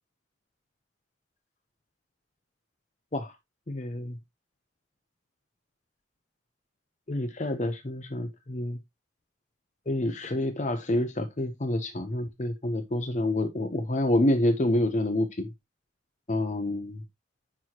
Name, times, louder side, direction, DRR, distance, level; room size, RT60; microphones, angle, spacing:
voice 1, 3.7-4.1 7.1-8.8 9.9-15.5 16.3-17.0, left 1 dB, 40° left, 0.8 m, -28 dB
10.0 x 4.7 x 2.9 m
head